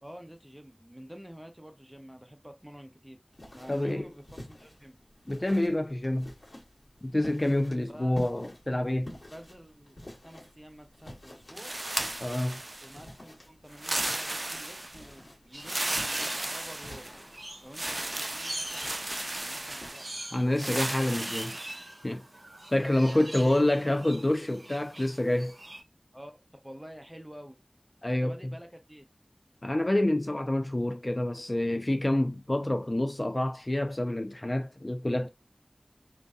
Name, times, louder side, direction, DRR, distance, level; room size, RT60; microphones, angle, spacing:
voice 1, 0.0-3.2 3.5-5.0 7.8-8.3 9.3-11.9 12.8-17.1 17.6-18.9 19.3-20.2 22.8-24.0 26.1-27.6 28.2-29.1, equal, 10° right, 0.7 m, -49 dB
sound 1, 3.3-19.9, left 1 dB, 75° left, 1.3 m, -49 dB
voice 2, 3.7-4.1 5.3-6.3 7.0-9.1 12.2-12.6 20.3-21.6 22.0-22.2 22.7-25.6 28.0-28.4 29.6-35.3, left 1 dB, 40° left, 0.3 m, -27 dB
sound 2, 11.6-13.1 13.7-15.1 15.6-17.3 17.7-20.1 20.6-21.8, right 2 dB, 65° right, 0.4 m, -34 dB
sound 3, 15.5-25.8, right 1 dB, 80° right, 0.8 m, -44 dB
2.6 x 2.2 x 2.3 m
wide cardioid pair, 45°, 0 cm